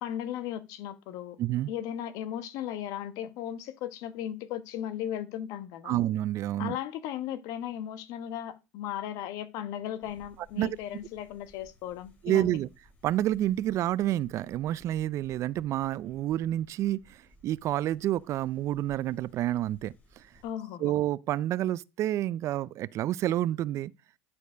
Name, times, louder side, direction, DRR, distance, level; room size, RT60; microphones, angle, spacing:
voice 1, 0.0-1.4 1.7-6.0 6.6-12.6 20.4-20.9, left 10 dB, 65° left, 1.1 m, -36 dB
voice 2, 1.4-1.7 5.9-6.8 10.6-10.8 12.2-12.7 13.0-20.2 20.8-23.9, right 13 dB, 50° right, 0.4 m, -29 dB
sound 1, 10.0-20.5, equal, 30° left, 5.6 m, -60 dB
11.0 x 4.5 x 5.0 m
supercardioid pair, 95°, 7 cm